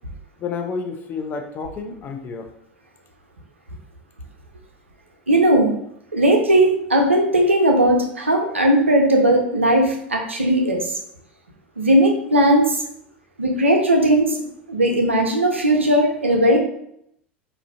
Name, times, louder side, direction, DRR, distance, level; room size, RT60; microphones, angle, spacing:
voice 1, 0.4-2.5, left 5 dB, 30° left, 4 dB, 0.4 m, -30 dB
voice 2, 5.3-5.7 6.1-10.8 11.8-12.8 13.4-14.3 14.7-16.6, right 1 dB, 85° right, 2 dB, 0.4 m, -17 dB
2.4 x 2.1 x 2.4 m, 0.72 s
figure-of-eight pair, 80°, 6 cm